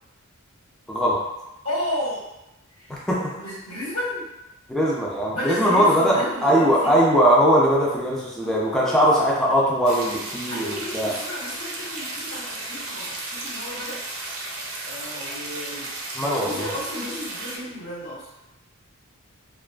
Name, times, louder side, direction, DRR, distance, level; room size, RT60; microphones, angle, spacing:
voice 1, 0.9-1.2 2.9-3.3 4.7-11.1 16.2-16.7, equal, ahead, -6 dB, 0.3 m, -20 dB
voice 2, 1.6-2.2 2.8-3.0 3.3-4.3 5.3-7.0 8.4-9.1 10.5-14.0 14.8-15.9 16.2-18.3, left 1 dB, 90° left, -9 dB, 1.2 m, -33 dB
sound 1, 9.8-17.6, right 2 dB, 80° right, 0.5 m, -34 dB
2.4 x 2.3 x 2.2 m, 0.96 s
head